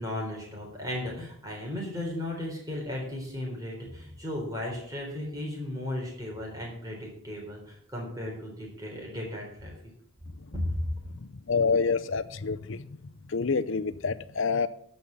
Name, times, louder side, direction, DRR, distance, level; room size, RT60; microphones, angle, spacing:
voice 1, 0.0-9.7 10.5-10.8, left 1 dB, 15° right, -1 dB, 3.8 m, -35 dB
voice 2, 11.5-12.9 13.3-14.7, left 5 dB, 60° left, 13 dB, 0.6 m, -27 dB
13.5 x 5.5 x 7.1 m, 0.69 s
head